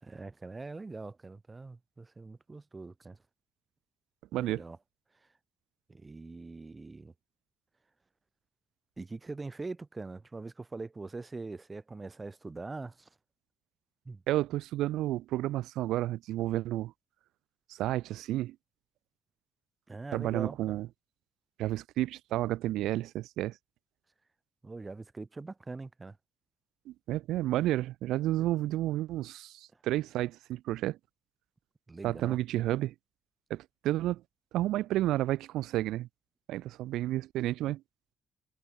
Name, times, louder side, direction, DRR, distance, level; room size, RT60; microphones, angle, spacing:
voice 1, 0.0-3.2 4.3-4.8 5.9-7.1 9.0-13.1 14.0-14.2 19.9-20.8 24.6-26.2 28.4-28.5 31.9-32.4, right 3 dB, 25° right, 1.6 m, -43 dB
voice 2, 4.3-4.6 14.3-16.9 17.7-18.5 20.1-20.9 21.6-23.5 26.9-31.0 32.0-32.9 33.5-34.2 34.5-36.1 36.5-37.8, right 15 dB, 90° right, 1.6 m, -31 dB
cardioid pair, 90°, 0 cm